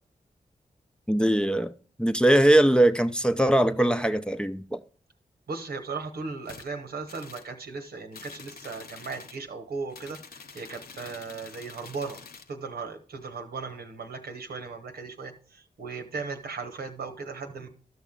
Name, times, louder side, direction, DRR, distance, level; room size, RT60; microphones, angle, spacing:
voice 1, 1.1-1.7 2.0-4.8, right 1 dB, 5° left, 0.6 m, -21 dB
voice 2, 5.5-12.2 12.5-17.7, right 4 dB, 90° right, 1.2 m, -37 dB
sound 1, 6.4-6.7 7.1-7.5 8.1-9.4 9.9-12.5, left 5 dB, 85° left, 0.7 m, -47 dB
12.5 x 6.2 x 3.7 m
cardioid pair, 45°, 15 cm